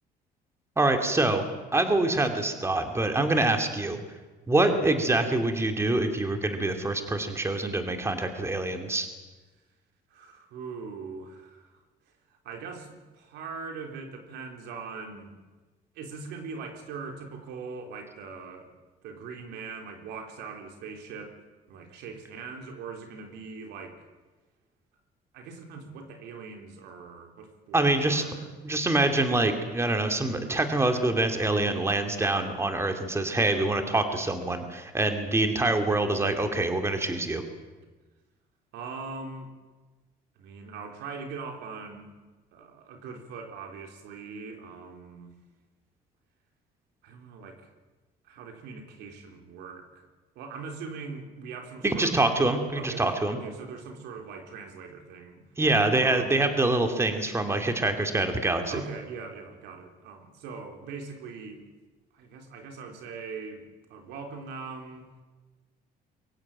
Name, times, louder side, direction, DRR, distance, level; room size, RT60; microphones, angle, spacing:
voice 1, 0.8-1.4 1.7-4.0 4.5-9.1 27.7-28.2 28.6-37.4 51.8-53.4 55.6-58.8, right 2 dB, 15° right, 6 dB, 2.8 m, -25 dB
voice 2, 10.1-11.8 12.3-15.4 16.0-18.7 19.0-21.4 21.7-24.0 25.3-28.5 38.7-39.5 40.4-42.1 42.5-45.3 47.0-47.7 48.2-50.1 50.4-52.2 52.7-55.4 56.0-56.3 58.7-61.7 62.1-65.1, right 5 dB, 85° right, 4 dB, 3.7 m, -41 dB
24.0 x 16.0 x 9.0 m, 1.3 s
cardioid pair, 110°, 17 cm